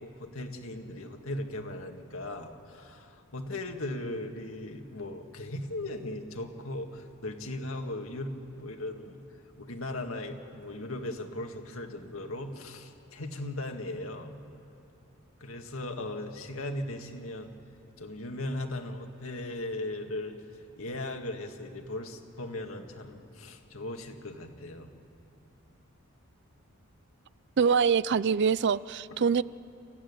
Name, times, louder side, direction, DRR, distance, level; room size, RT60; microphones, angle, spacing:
voice 1, 0.0-9.2 9.6-14.3 15.4-17.5 18.0-20.4 20.8-24.9, left 1 dB, 75° left, 4 dB, 2.0 m, -38 dB
voice 2, 27.6-29.4, right 6 dB, 55° right, 18 dB, 0.4 m, -24 dB
27.0 x 15.5 x 9.8 m, 2.8 s
head